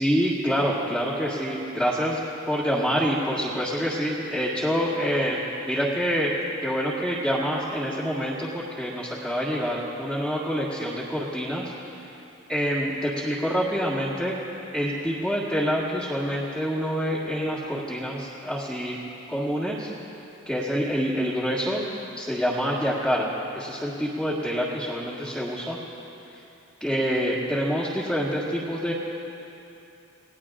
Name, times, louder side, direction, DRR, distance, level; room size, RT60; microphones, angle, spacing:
voice 1, 0.0-2.2 2.5-5.4 5.6-6.3 6.6-11.6 12.5-14.4 14.7-19.0 19.3-19.9 20.4-21.8 22.2-25.8 26.8-28.9, equal, ahead, -9 dB, 1.7 m, -26 dB
28.5 x 18.5 x 2.5 m, 2.8 s
head